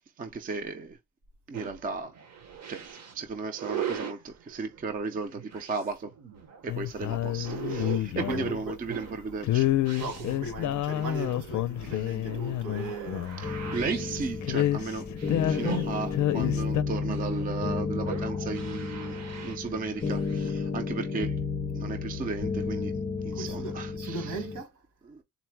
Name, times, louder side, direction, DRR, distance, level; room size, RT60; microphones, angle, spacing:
voice 1, 0.2-1.0 1.5-2.1 2.7-6.1 6.6-9.7 11.8-12.0 13.4-15.1 15.4-21.4 21.7-24.4 25.1-25.2, right 4 dB, 30° right, 0.4 m, -35 dB
sound 1, 1.5-20.5, right 8 dB, 55° right, 0.8 m, -41 dB
sound 2, 6.7-8.6 9.4-13.5 13.8-13.9 14.2-15.8 16.1-16.8, left 13 dB, 65° left, 0.5 m, -29 dB
voice 2, 8.1-8.8 10.0-13.3 23.3-24.7, right 3 dB, 70° right, 1.6 m, -38 dB
sound 3, 13.4-24.6, left 5 dB, 30° left, 0.6 m, -32 dB
4.1 x 2.0 x 4.4 m
wide cardioid pair, 170°, 31 cm